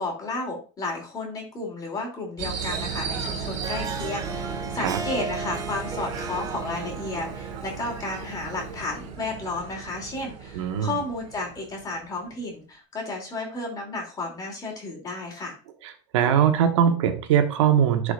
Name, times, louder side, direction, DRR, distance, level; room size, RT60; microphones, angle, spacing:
voice 1, 0.0-15.5, left 2 dB, 25° left, 0 dB, 2.9 m, -33 dB
sound 1, 2.4-12.3, right 6 dB, 55° right, 1.8 m, -35 dB
Harp, 3.4-8.9, right 3 dB, 25° right, 0.8 m, -37 dB
voice 2, 10.5-10.9 15.8-18.1, right 8 dB, 85° right, 7 dB, 1.3 m, -21 dB
11.5 x 5.0 x 2.5 m, 0.35 s
supercardioid pair, 130°, 15 cm